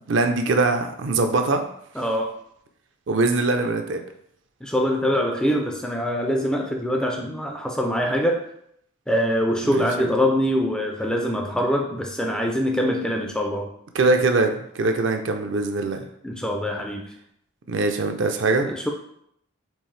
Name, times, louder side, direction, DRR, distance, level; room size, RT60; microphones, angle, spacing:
voice 1, 0.1-1.6 3.1-4.0 9.6-9.9 13.9-16.0 17.7-18.7, right 3 dB, 60° right, 6 dB, 0.5 m, -22 dB
voice 2, 2.0-2.4 4.6-8.4 9.1-13.7 16.2-17.0 18.6-18.9, equal, 5° left, 2 dB, 0.3 m, -24 dB
4.5 x 3.2 x 3.2 m, 0.72 s
head